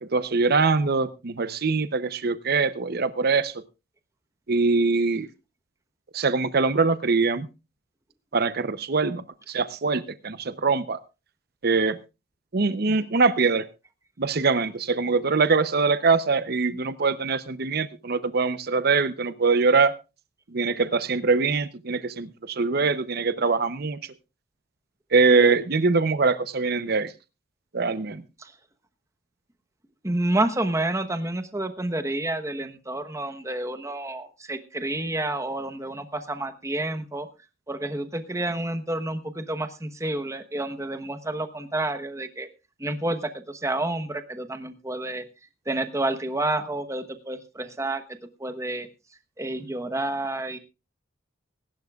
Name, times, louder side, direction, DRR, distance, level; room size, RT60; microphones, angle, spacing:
voice 1, 0.0-3.6 4.5-5.3 6.1-7.5 8.3-11.0 11.6-12.0 12.5-13.6 14.2-19.9 20.5-24.0 25.1-27.1 27.7-28.2, right 4 dB, 55° right, 13 dB, 0.7 m, -23 dB
voice 2, 30.0-37.3 37.7-42.5 42.8-45.2 45.7-48.0 48.4-48.9 49.4-50.6, right 2 dB, 15° right, 7 dB, 1.1 m, -29 dB
24.0 x 12.0 x 2.4 m, 0.29 s
head